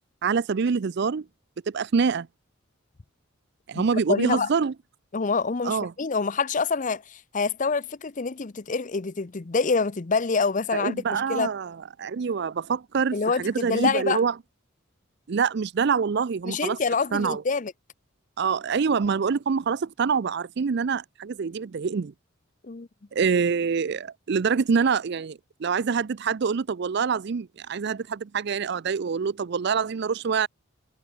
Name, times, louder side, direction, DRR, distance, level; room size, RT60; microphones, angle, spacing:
voice 1, 0.2-1.2 1.7-2.3 3.7-4.7 5.6-5.9 10.7-14.3 15.3-16.8 17.1-17.4 18.4-22.1 23.1-30.5, right 5 dB, 55° right, 0.4 m, -25 dB
voice 2, 4.1-4.5 5.1-11.5 13.1-14.2 16.4-17.7 22.6-22.9, left 4 dB, 40° left, 0.6 m, -26 dB
head